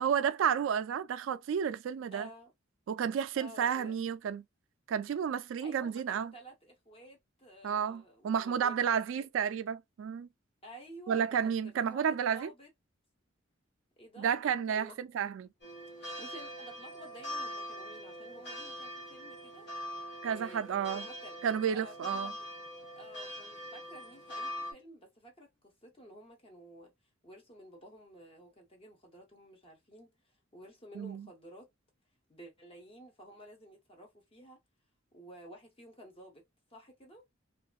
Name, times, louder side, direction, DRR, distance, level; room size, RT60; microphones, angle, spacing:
voice 1, 0.0-2.3 2.9-4.4 4.9-6.3 7.6-10.3 11.1-12.5 14.2-15.5 20.2-21.1 21.4-22.3 31.0-31.3, right 7 dB, 70° right, 0.3 m, -31 dB
voice 2, 2.1-2.5 3.4-3.9 5.6-9.3 10.6-11.4 11.6-12.7 14.0-14.3 14.7-15.0 16.0-19.7 20.2-21.4 21.7-22.5 22.9-26.9 27.2-31.7 32.3-34.6 35.1-36.4 36.7-37.2, right 1 dB, 30° left, 0.8 m, -52 dB
sound 1, 15.6-24.7, equal, 55° left, 1.4 m, -42 dB
2.7 x 2.5 x 2.2 m
head